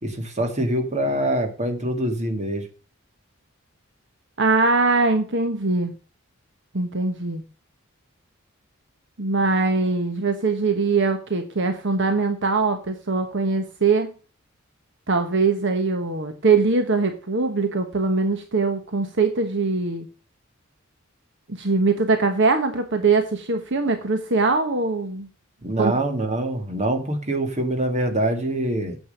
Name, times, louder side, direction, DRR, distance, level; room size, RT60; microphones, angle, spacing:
voice 1, 0.0-2.7 25.6-29.0, right 1 dB, 35° right, 5 dB, 2.0 m, -24 dB
voice 2, 4.4-5.9 6.7-7.4 9.2-14.1 15.1-20.1 21.5-25.3 25.8-25.9, right 3 dB, 60° right, 7 dB, 1.2 m, -22 dB
9.0 x 7.8 x 6.4 m, 0.35 s
head